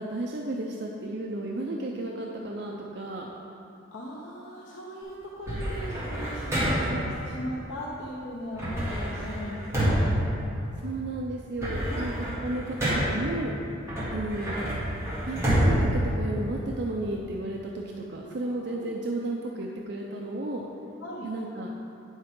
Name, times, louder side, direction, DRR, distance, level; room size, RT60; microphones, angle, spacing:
voice 1, 0.0-3.3 6.8-7.2 10.8-13.5 14.1-14.5 15.3-20.7 21.2-21.7, right 2 dB, 55° right, -1 dB, 0.5 m, -33 dB
voice 2, 3.9-10.1 11.9-12.1 14.0-14.1 18.2-18.9 21.0-21.3, equal, 75° left, -5 dB, 0.9 m, -38 dB
sound 1, 5.5-7.1 8.5-11.0 11.4-13.3 13.9-16.9, equal, 15° right, 1.7 m, -28 dB
9.4 x 7.2 x 3.7 m, 2.8 s
head